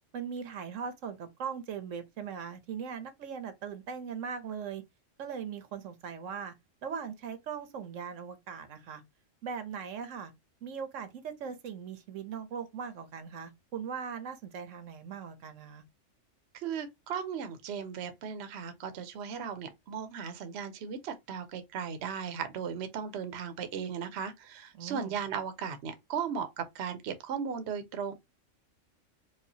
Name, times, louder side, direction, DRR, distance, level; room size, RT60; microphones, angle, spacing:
voice 1, 0.1-4.8 5.2-6.5 6.8-9.0 9.4-10.3 10.6-15.8 24.7-25.2, right 7 dB, 85° right, 1.1 m, -39 dB
voice 2, 16.5-28.1, right 7 dB, 60° right, 0.9 m, -37 dB
4.9 x 2.4 x 2.7 m
omnidirectional pair, 1.3 m